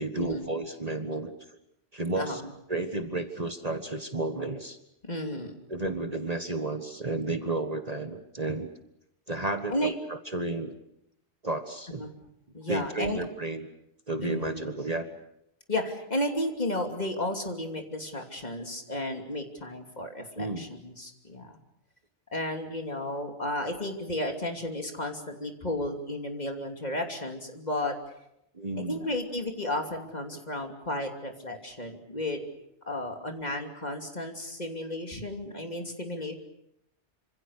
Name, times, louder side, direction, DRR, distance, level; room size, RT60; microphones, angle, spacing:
voice 1, 0.0-1.4 1.9-2.4 2.7-4.8 5.7-8.7 9.3-10.7 11.4-12.1 12.7-13.7 14.1-15.0 20.4-20.7 28.5-29.1, right 2 dB, 35° right, 7 dB, 1.6 m, -32 dB
voice 2, 2.1-2.5 5.0-5.5 9.7-9.9 11.9-12.1 12.5-13.2 14.2-14.7 15.7-21.6 22.3-27.9 28.9-32.4 32.9-36.3, left 1 dB, 35° left, 3 dB, 3.1 m, -33 dB
26.5 x 26.5 x 6.6 m, 0.79 s
omnidirectional pair, 1.2 m